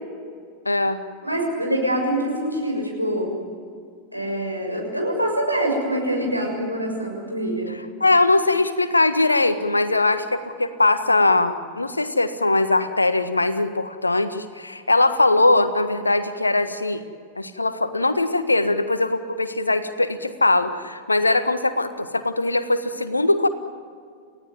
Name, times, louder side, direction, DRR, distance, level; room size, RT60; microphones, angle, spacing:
voice 1, 0.6-1.0 8.0-17.0 17.3-23.5, left 2 dB, 80° left, 11 dB, 1.6 m, -21 dB
voice 2, 1.2-3.3 4.1-7.7, right 1 dB, 90° right, 0 dB, 6.6 m, -25 dB
29.5 x 17.0 x 9.4 m, 2.1 s
figure-of-eight pair, 90°, 0 cm